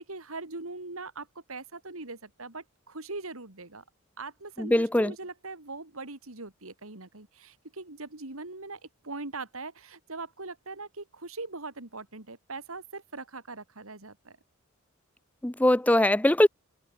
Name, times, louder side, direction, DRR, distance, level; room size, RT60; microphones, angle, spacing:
voice 1, 0.0-3.8 4.2-14.4, right 3 dB, 85° right, 3.1 m, -41 dB
voice 2, 4.6-5.1 15.4-16.5, left 1 dB, 5° left, 0.5 m, -21 dB
head